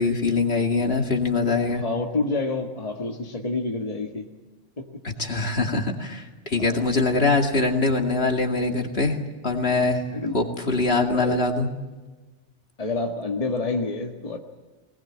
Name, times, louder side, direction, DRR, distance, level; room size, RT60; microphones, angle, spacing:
voice 1, 0.0-1.8 5.2-9.2 9.4-10.0 10.3-11.7, left 3 dB, 55° left, 3 dB, 2.6 m, -23 dB
voice 2, 1.8-4.3 4.8-4.9 6.6-6.8 7.1-7.3 10.1-10.4 11.1-11.4 12.8-14.4, left 3 dB, 30° left, 2 dB, 1.7 m, -28 dB
22.5 x 20.5 x 8.8 m, 1.2 s
omnidirectional pair, 1.3 m